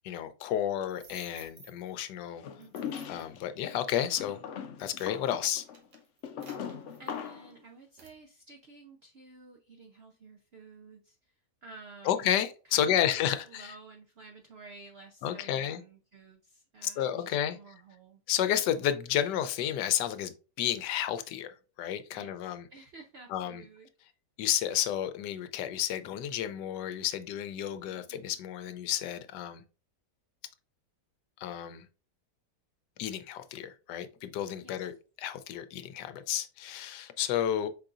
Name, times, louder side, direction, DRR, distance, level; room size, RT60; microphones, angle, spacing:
voice 1, 0.0-2.4 3.1-4.4 4.8-5.7 12.0-13.7 15.2-15.8 16.8-17.6 18.3-22.7 23.3-23.6 24.4-29.6 31.4-31.9 33.0-37.7, left 10 dB, 90° left, 1.2 m, -31 dB
sound 1, 0.9-2.0 2.6-3.4 4.0-4.2 4.7-7.5 8.0-8.2, right 5 dB, 55° right, 1.4 m, -55 dB
sound 2, 2.4-3.4 4.1-7.5, left 8 dB, 70° left, 0.7 m, -40 dB
voice 2, 2.6-3.0 6.6-11.3 11.6-18.2 22.1-24.1 27.9-28.4 34.6-34.9, right 3 dB, 80° right, 0.5 m, -52 dB
5.3 x 3.8 x 2.4 m
omnidirectional pair, 1.8 m